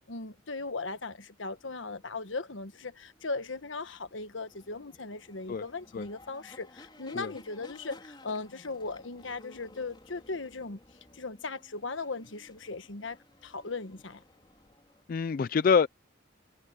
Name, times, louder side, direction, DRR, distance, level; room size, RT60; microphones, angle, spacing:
voice 1, 0.1-10.8 11.1-14.2, left 3 dB, 80° left, 1.4 m, -38 dB
sound 1, 1.4-15.0, left 1 dB, 25° left, 3.9 m, -56 dB
voice 2, 15.1-15.9, left 6 dB, 45° left, 0.3 m, -25 dB
head